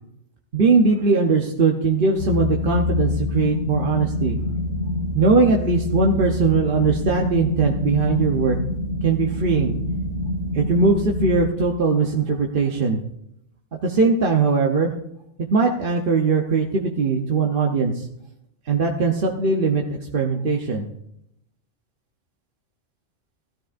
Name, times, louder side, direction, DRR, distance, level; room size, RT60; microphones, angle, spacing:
voice 1, 0.5-4.4 5.1-8.6 9.0-9.7 10.5-13.0 13.8-14.9 15.5-18.1 18.7-20.9, right 4 dB, 50° right, 1 dB, 1.0 m, -20 dB
sound 1, 2.2-11.5, left 2 dB, 70° left, 2.4 m, -26 dB
16.5 x 12.5 x 2.6 m, 0.78 s
omnidirectional pair, 1.3 m